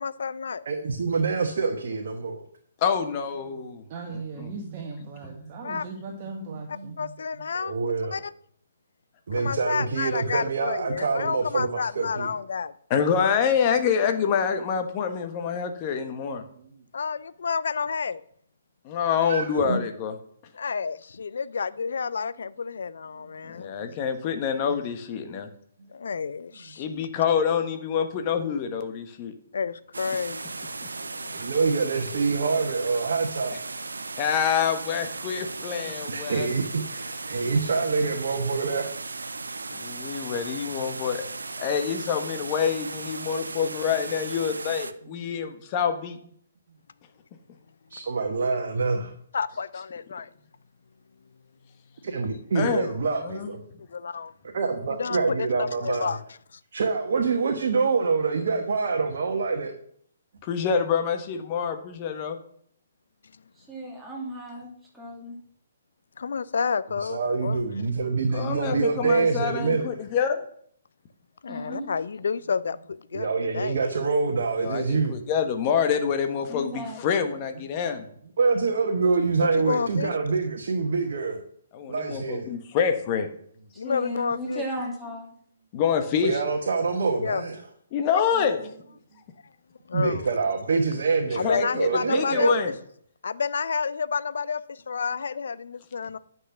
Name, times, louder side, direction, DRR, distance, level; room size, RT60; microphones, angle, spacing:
voice 1, 0.0-0.6 5.6-5.9 6.7-7.7 8.1-8.3 9.4-12.7 16.9-18.2 20.5-23.7 25.9-27.1 29.5-30.5 30.9-31.5 35.8-35.9 49.3-50.3 53.9-54.3 54.9-56.2 56.5-56.6 66.2-67.6 71.4-73.8 79.4-80.1 83.8-84.6 87.2-87.5 89.9-90.3 91.4-92.7 93.2-96.2, left 5 dB, 65° left, 0.5 m, -30 dB
voice 2, 0.6-2.4 5.2-5.5 6.8-6.9 7.6-8.2 9.3-12.3 16.6-16.7 19.2-19.8 25.3-25.4 25.8-25.9 31.3-33.6 36.1-38.9 47.9-49.1 52.0-53.6 54.5-56.1 56.7-59.7 67.1-69.9 73.1-75.2 78.4-81.4 81.9-82.5 86.2-87.6 89.9-92.6, right 4 dB, 55° right, 1.3 m, -26 dB
voice 3, 2.8-3.8 4.4-4.5 12.9-16.4 18.8-20.1 23.5-25.5 26.8-29.3 34.2-36.5 39.7-41.3 41.6-46.1 52.5-52.9 53.2-53.5 60.4-62.4 68.3-70.4 74.6-78.1 81.7-83.3 85.7-86.4 87.9-88.6 91.4-92.7, left 7 dB, 30° left, 1.3 m, -26 dB
voice 4, 3.9-7.0, right 4 dB, 35° right, 1.6 m, -38 dB
sound 1, 29.9-44.9, right 3 dB, 75° right, 0.6 m, -36 dB
voice 5, 63.5-65.4 71.5-72.0 76.5-77.0 83.7-85.3 88.3-88.7, equal, 5° right, 2.9 m, -36 dB
10.0 x 6.2 x 6.0 m
figure-of-eight pair, 130°, 0 cm